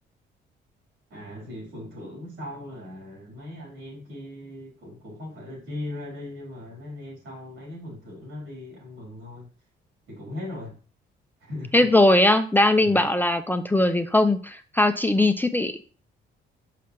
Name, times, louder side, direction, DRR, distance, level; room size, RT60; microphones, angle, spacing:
voice 1, 1.1-9.5 10.1-10.8 11.4-11.9 12.8-13.1, left 1 dB, 80° right, 3.7 m, -39 dB
voice 2, 11.7-15.7, left 1 dB, 10° left, 0.5 m, -20 dB
5.8 x 5.7 x 3.2 m
cardioid pair, 90°, 20 cm